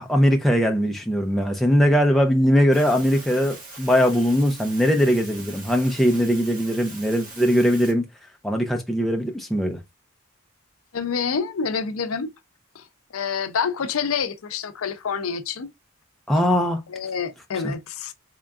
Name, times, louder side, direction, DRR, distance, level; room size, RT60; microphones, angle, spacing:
voice 1, 0.0-8.0 8.4-9.8 16.3-16.8 17.6-17.7, equal, ahead, 0.5 m, -20 dB
sound 1, 2.7-7.9, right 2 dB, 40° right, 1.3 m, -41 dB
voice 2, 10.9-12.3 12.7-12.8 13.1-15.7 16.9-18.1, left 6 dB, 85° left, 0.6 m, -27 dB
3.6 x 3.4 x 2.4 m
head